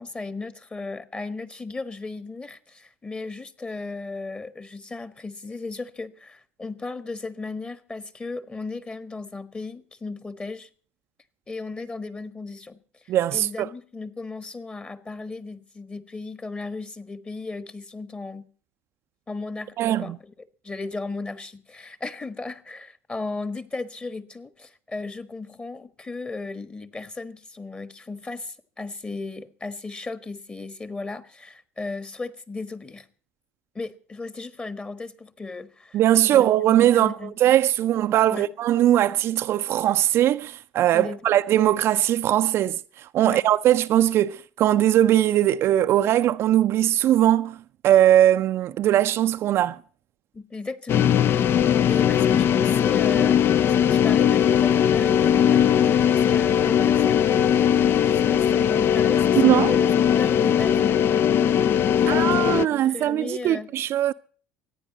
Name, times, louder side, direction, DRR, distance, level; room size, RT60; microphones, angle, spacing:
voice 1, 0.0-10.7 11.5-12.8 13.0-18.5 19.3-20.3 20.6-33.1 33.7-37.3 38.3-38.5 40.9-41.4 43.2-43.4 50.3-51.1 51.5-57.3 58.0-61.0 62.0-63.7, left 3 dB, 20° left, 1.4 m, -35 dB
voice 2, 13.1-13.7 19.8-20.2 35.9-47.6 47.8-49.8 59.4-59.7 62.1-64.1, right 12 dB, 45° right, 0.6 m, -20 dB
sound 1, 50.9-62.7, left 9 dB, 40° left, 0.6 m, -19 dB
24.5 x 10.0 x 4.1 m
figure-of-eight pair, 65°, 6 cm